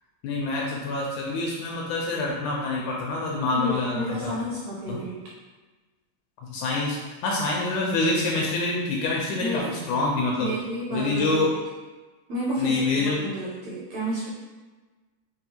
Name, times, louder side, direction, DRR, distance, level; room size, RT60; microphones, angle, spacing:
voice 1, 0.2-4.3 4.9-5.0 6.5-10.5 10.9-11.5 12.6-13.2, left 3 dB, 80° left, -3 dB, 1.9 m, -26 dB
voice 2, 3.5-5.2 9.4-9.7 10.4-11.4 12.3-14.3, equal, 75° right, -6 dB, 1.7 m, -31 dB
6.3 x 2.3 x 2.8 m, 1.3 s
omnidirectional pair, 3.8 m